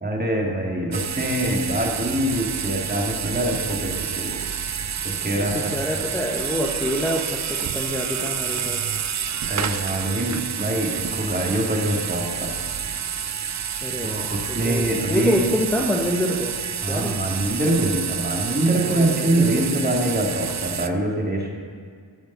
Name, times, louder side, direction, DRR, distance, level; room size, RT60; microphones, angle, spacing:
voice 1, 0.0-4.4 5.0-5.7 9.5-12.5 14.0-15.4 16.8-21.5, right 1 dB, 20° right, -1 dB, 2.0 m, -24 dB
sound 1, 0.9-20.9, right 8 dB, 40° right, 0.4 m, -29 dB
voice 2, 5.3-8.8 13.8-16.6 16.9-17.2 18.9-20.0, equal, 5° left, -2 dB, 1.0 m, -27 dB
13.5 x 5.3 x 6.7 m, 2.1 s
cardioid pair, 65°, 45 cm